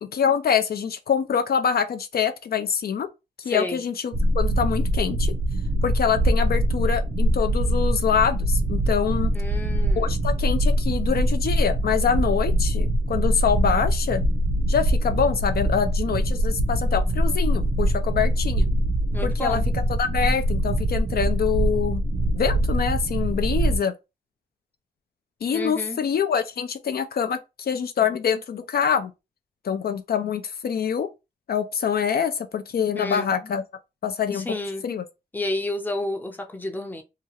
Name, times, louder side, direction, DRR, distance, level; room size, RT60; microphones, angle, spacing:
voice 1, 0.0-3.1 3.4-5.3 5.8-9.3 10.0-14.2 14.7-18.7 19.2-19.6 20.0-22.0 22.3-23.9 25.4-29.1 29.6-31.1 31.5-33.6 34.0-34.5 34.8-35.0, left 7 dB, 65° left, 0.4 m, -25 dB
voice 2, 3.5-3.8 9.3-10.1 19.1-19.6 25.5-26.0 32.9-33.5 34.3-34.8 35.3-37.0, left 1 dB, 10° left, 0.5 m, -30 dB
sound 1, 4.1-23.8, right 1 dB, 75° right, 0.6 m, -23 dB
2.8 x 2.3 x 2.8 m
wide cardioid pair, 125°, 17 cm